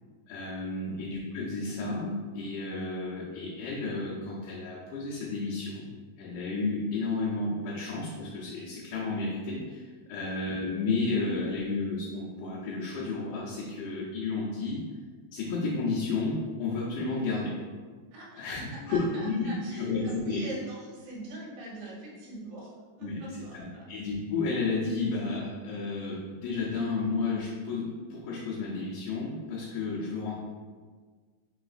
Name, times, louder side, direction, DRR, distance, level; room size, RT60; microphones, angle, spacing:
voice 1, 0.3-5.9 6.2-14.8 15.3-17.5 18.4-20.4 23.0-23.2 23.5-30.3, left 3 dB, 80° left, -7 dB, 2.3 m, -32 dB
voice 2, 18.1-22.7 23.0-23.9 30.0-30.1, right 2 dB, 70° right, -4 dB, 2.3 m, -43 dB
5.0 x 4.1 x 2.4 m, 1.5 s
omnidirectional pair, 3.7 m